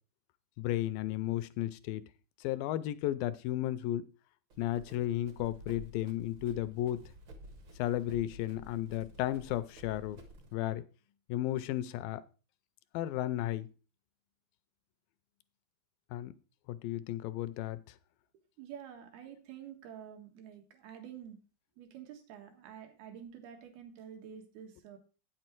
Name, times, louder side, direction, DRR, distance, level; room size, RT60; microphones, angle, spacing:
voice 1, 0.6-2.0 2.4-4.1 4.6-7.0 7.8-10.2 10.5-10.8 11.3-12.2 12.9-13.7 16.1-16.3 16.7-17.8, left 13 dB, 80° left, 14 dB, 2.2 m, -34 dB
Run, 4.5-10.5, equal, 60° right, 1.3 m, -52 dB
voice 2, 18.6-21.4 21.8-25.0, right 9 dB, 80° right, 5 dB, 3.4 m, -49 dB
9.0 x 7.7 x 4.5 m, 0.34 s
omnidirectional pair, 4.3 m